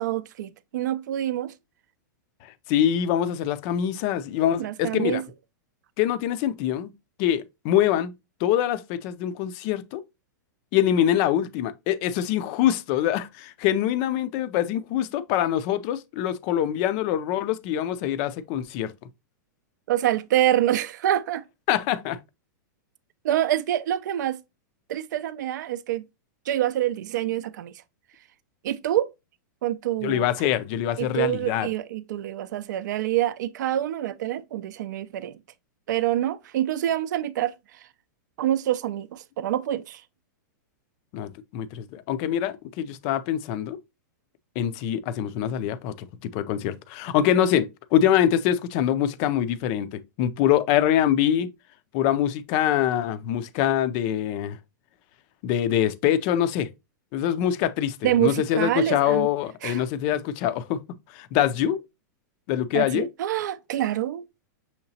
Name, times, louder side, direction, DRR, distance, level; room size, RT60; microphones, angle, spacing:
voice 1, 0.0-1.5 4.6-5.2 19.9-21.4 23.2-24.4 24.9-26.0 26.5-27.7 28.6-29.1 29.6-30.3 31.0-35.4 35.9-37.8 38.4-40.0 58.0-59.3 59.6-59.8 62.7-64.2, right 12 dB, 70° right, 0.4 m, -26 dB
voice 2, 2.4-5.2 6.0-6.9 7.2-8.1 8.4-10.0 10.7-18.9 21.7-22.2 30.0-31.7 41.1-43.8 44.6-46.1 46.3-51.5 51.9-54.6 55.4-56.7 57.1-60.8 61.1-61.8 62.5-63.1, left 10 dB, 35° left, 0.4 m, -24 dB
6.4 x 2.9 x 2.7 m
supercardioid pair, 160°, 10 cm